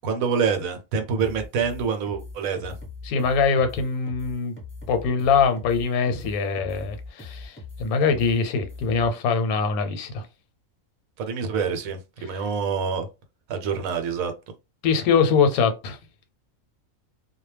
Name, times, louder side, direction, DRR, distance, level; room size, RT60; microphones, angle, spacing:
voice 1, 0.0-2.7 11.2-13.1 13.5-14.3, right 6 dB, 75° right, 1.0 m, -26 dB
sound 1, 1.2-9.1, left 3 dB, 10° left, 0.8 m, -40 dB
voice 2, 3.0-4.5 4.9-10.2 14.8-16.0, left 5 dB, 90° left, 1.1 m, -23 dB
2.3 x 2.1 x 3.2 m
omnidirectional pair, 1.5 m